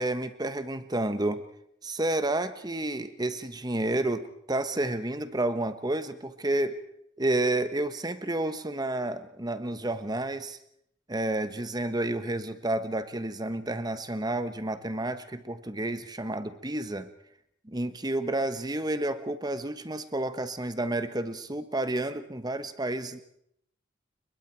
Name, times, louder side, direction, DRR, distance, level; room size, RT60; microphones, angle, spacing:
voice 1, 0.0-1.4 1.8-6.8 7.2-10.6 11.1-17.1 17.6-23.2, right 1 dB, 20° right, 11 dB, 1.2 m, -30 dB
29.5 x 22.0 x 4.6 m, 0.72 s
head